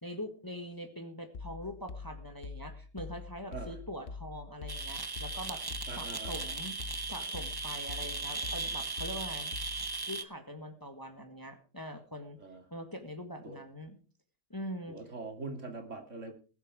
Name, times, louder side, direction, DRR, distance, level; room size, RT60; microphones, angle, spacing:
voice 1, 0.0-5.7 5.9-6.8 7.1-9.5 10.0-12.4 12.7-14.0 14.5-15.0, equal, 15° left, 6 dB, 1.6 m, -43 dB
sound 1, 1.3-10.0, left 4 dB, 50° left, 0.9 m, -45 dB
sound 2, 4.7-10.2, right 3 dB, 20° right, 0.8 m, -37 dB
voice 2, 5.9-6.5 12.4-12.6 13.4-13.6 14.9-16.3, right 3 dB, 60° right, 5 dB, 2.8 m, -42 dB
20.5 x 8.1 x 4.8 m, 0.37 s
omnidirectional pair, 1.5 m